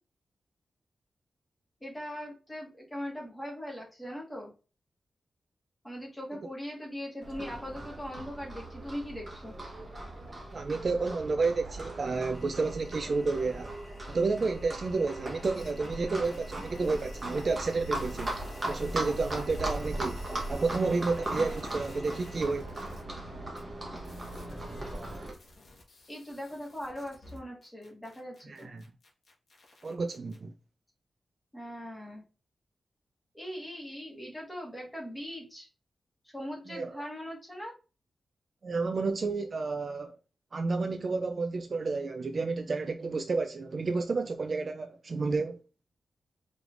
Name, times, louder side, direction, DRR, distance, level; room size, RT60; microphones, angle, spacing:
voice 1, 1.8-4.5 5.8-9.5 26.1-28.7 31.5-32.2 33.3-35.7 36.2-37.7, equal, 10° left, 1.5 m, -40 dB
Livestock farm animals working animals, 7.2-25.3, right 1 dB, 20° right, 1.0 m, -38 dB
voice 2, 10.5-13.7 14.1-18.4 18.7-20.2 20.5-22.7 28.5-28.8 29.8-30.5 36.7-37.0 38.6-40.1 40.5-45.6, right 3 dB, 40° right, 0.3 m, -31 dB
sound 1, 12.3-22.4, left 1 dB, 25° left, 1.5 m, -56 dB
sound 2, 15.5-16.0 16.2-23.0 23.6-23.7 24.0-30.4, left 2 dB, 60° left, 1.2 m, -53 dB
4.8 x 3.2 x 2.5 m
wide cardioid pair, 175°, 0 cm